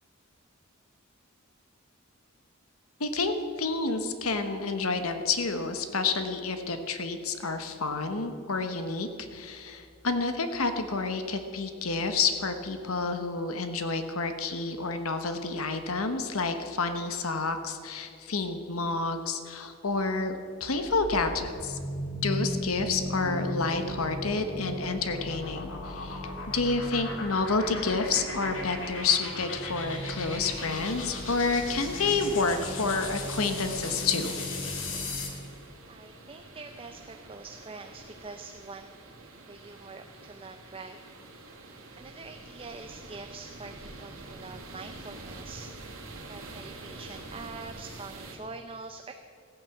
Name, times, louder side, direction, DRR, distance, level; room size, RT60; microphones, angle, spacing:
voice 1, 3.0-21.8 22.2-26.2 26.5-34.3, left 4 dB, 85° left, 8 dB, 1.1 m, -29 dB
sound 1, 20.7-35.4, left 1 dB, 65° left, 2.2 m, -36 dB
sound 2, 30.4-48.4, right 2 dB, 75° right, 2.4 m, -46 dB
voice 2, 35.9-38.9 39.5-41.0 42.0-45.9 46.3-49.1, right 3 dB, 25° right, 5 dB, 0.6 m, -45 dB
15.5 x 9.4 x 7.2 m, 2.4 s
head